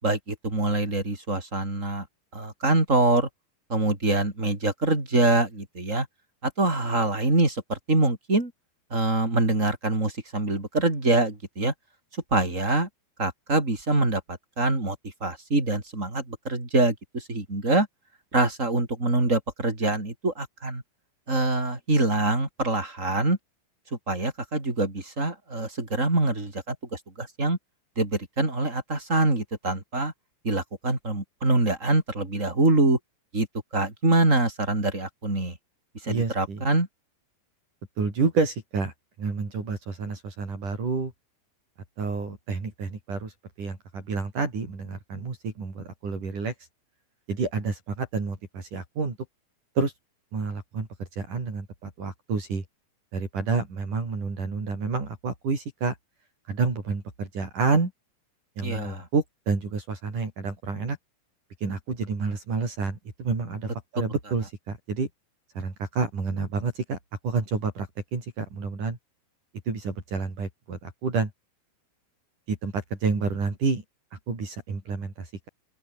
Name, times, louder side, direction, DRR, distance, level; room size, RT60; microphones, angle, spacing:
voice 1, 0.0-2.1 2.3-3.3 3.7-6.1 6.4-8.5 8.9-11.7 12.3-12.9 13.2-17.9 18.3-20.8 21.3-23.4 23.9-27.6 28.0-30.1 30.4-33.0 33.3-33.5 33.7-35.6 36.0-36.9 58.6-59.1, right 2 dB, 15° right, 5.7 m, -25 dB
voice 2, 36.1-36.6 38.0-38.9 39.2-41.1 42.0-43.3 43.6-46.5 47.3-49.2 49.8-49.9 50.3-50.9 51.2-52.6 53.1-56.0 56.5-57.9 58.6-61.0 61.6-65.1 65.5-67.0 67.2-69.0 69.7-71.3 72.5-73.8 74.3-75.5, right 4 dB, 45° right, 6.7 m, -29 dB
open air
omnidirectional pair, 5.1 m